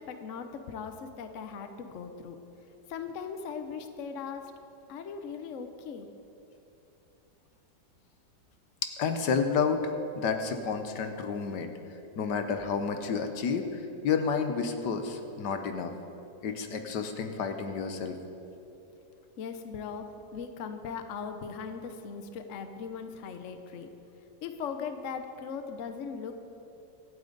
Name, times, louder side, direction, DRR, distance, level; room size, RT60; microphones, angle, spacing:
voice 1, 0.0-2.4 2.9-4.5 4.9-6.1 19.4-23.9 24.4-26.3, left 6 dB, 55° left, 7 dB, 1.0 m, -39 dB
voice 2, 9.0-11.7 12.2-15.9 16.4-18.2, left 5 dB, 75° left, 6 dB, 1.5 m, -30 dB
24.5 x 8.6 x 3.9 m, 2.9 s
omnidirectional pair, 1.9 m